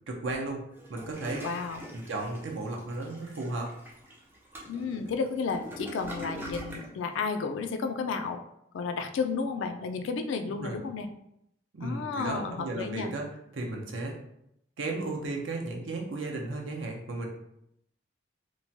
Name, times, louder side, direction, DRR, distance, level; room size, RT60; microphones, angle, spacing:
voice 1, 0.1-1.5 1.9-3.7 10.5-10.8 11.7-13.3 13.5-14.2 14.8-17.3, right 2 dB, 85° right, 1 dB, 0.6 m, -34 dB
Toilet flush, 0.7-6.9, equal, 10° right, 0.3 m, -43 dB
voice 2, 1.4-1.9 4.7-8.4 8.7-11.1 11.8-13.1, left 5 dB, 85° left, 8 dB, 0.3 m, -32 dB
3.0 x 2.1 x 2.7 m, 0.77 s
head